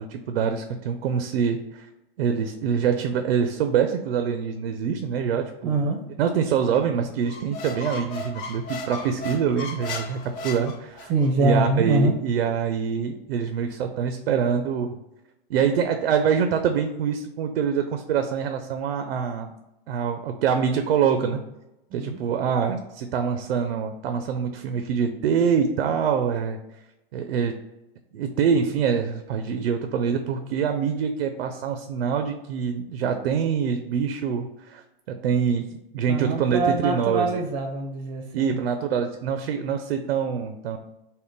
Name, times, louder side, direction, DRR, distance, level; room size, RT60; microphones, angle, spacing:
voice 1, 0.0-1.9 2.2-5.8 6.2-11.1 11.4-15.0 15.5-19.5 19.9-21.4 21.9-26.6 27.1-27.5 28.1-35.7 35.9-37.3 38.3-40.8, right 7 dB, 85° right, 7 dB, 0.5 m, -25 dB
voice 2, 5.6-6.0 11.1-12.1 21.9-22.2 36.1-38.6, right 2 dB, 35° right, 3 dB, 0.5 m, -24 dB
Squeak, 7.2-11.3, left 2 dB, 30° left, 0.4 m, -35 dB
3.6 x 2.1 x 3.9 m, 0.93 s
hypercardioid pair, 130°, 30 cm